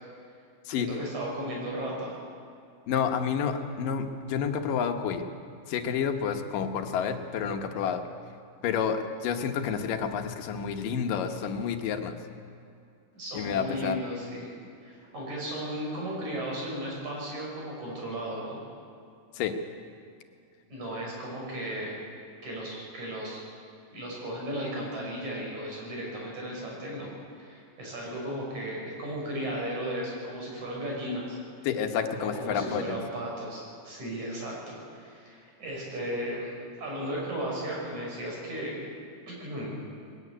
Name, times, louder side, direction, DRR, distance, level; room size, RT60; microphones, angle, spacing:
voice 1, 0.7-2.2 13.1-14.5 14.8-18.6 20.7-22.0 22.4-23.4 23.9-31.4 32.2-38.8 39.3-39.8, right 1 dB, 60° right, -3 dB, 7.4 m, -35 dB
voice 2, 2.9-5.2 5.7-8.0 8.6-12.2 13.3-14.0 19.3-19.6 31.6-33.0, left 7 dB, 80° left, 5 dB, 2.8 m, -29 dB
21.0 x 15.5 x 9.8 m, 2.4 s
omnidirectional pair, 3.9 m